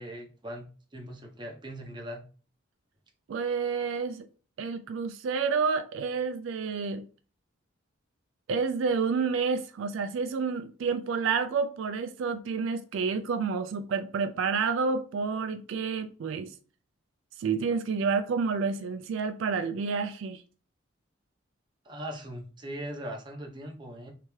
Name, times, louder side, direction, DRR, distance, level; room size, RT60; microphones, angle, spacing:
voice 1, 0.0-2.2 21.8-24.1, equal, 25° right, 0.7 m, -40 dB
voice 2, 3.3-4.3 4.6-7.1 8.5-16.5 17.4-20.4, right 5 dB, 75° right, 0.3 m, -29 dB
3.3 x 2.9 x 3.1 m
head